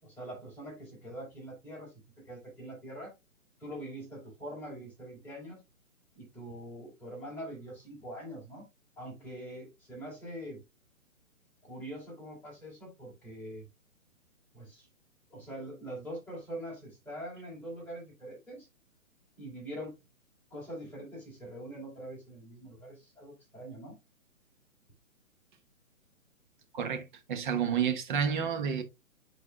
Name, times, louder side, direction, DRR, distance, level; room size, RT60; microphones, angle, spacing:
voice 1, 0.0-3.1 3.6-5.6 6.1-8.6 9.0-10.6 11.6-13.6 14.5-14.9 15.3-18.7 19.4-20.0 20.5-24.0, right 1 dB, 5° left, 3.8 m, -43 dB
voice 2, 26.7-28.8, right 7 dB, 35° right, 1.1 m, -30 dB
10.5 x 4.7 x 2.2 m
hypercardioid pair, 145°, 41 cm